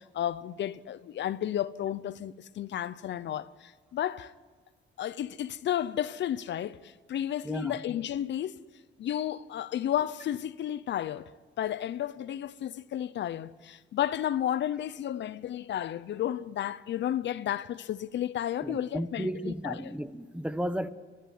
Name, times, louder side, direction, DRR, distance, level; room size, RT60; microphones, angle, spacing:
voice 1, 0.0-4.3 5.0-8.5 9.0-11.3 11.6-19.9, left 11 dB, 65° left, 0.7 m, -32 dB
voice 2, 7.4-7.8 18.6-20.9, equal, 5° right, 1.1 m, -34 dB
30.0 x 11.5 x 9.7 m
cardioid pair, 90°, 20 cm